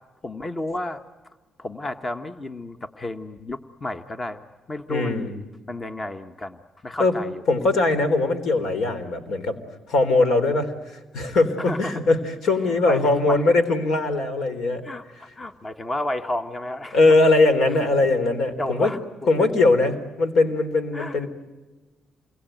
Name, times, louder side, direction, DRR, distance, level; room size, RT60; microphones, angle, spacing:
voice 1, 0.2-1.0 1.6-4.4 4.7-5.3 5.7-6.6 6.8-7.3 11.6-12.0 12.9-13.0 13.3-13.4 14.8-17.2 18.6-19.0 19.3-19.6 20.9-21.3, left 1 dB, 25° left, 7 dB, 1.4 m, -31 dB
voice 2, 4.9-5.4 7.0-7.1 7.5-9.6 9.9-14.8 16.9-18.9 19.3-21.3, left 2 dB, 75° left, 9 dB, 3.8 m, -21 dB
28.5 x 22.0 x 9.3 m, 1.2 s
cardioid pair, 90°, 0 cm